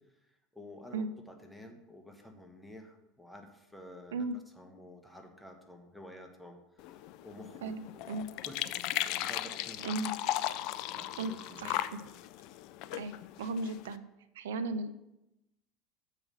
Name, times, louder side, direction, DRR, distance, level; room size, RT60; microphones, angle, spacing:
voice 1, 0.2-4.3 4.5-8.1 8.4-10.0 10.8-11.8, left 1 dB, 5° left, 4 dB, 1.2 m, -51 dB
sound 1, 6.8-14.0, left 14 dB, 60° left, 0.4 m, -37 dB
voice 2, 7.6-8.3 9.8-10.1 11.2-11.3 11.6-11.8 12.9-13.1 13.4-14.0 14.3-14.9, right 3 dB, 80° right, 12 dB, 0.5 m, -35 dB
7.0 x 4.9 x 5.6 m, 0.91 s
hypercardioid pair, 80°, 0 cm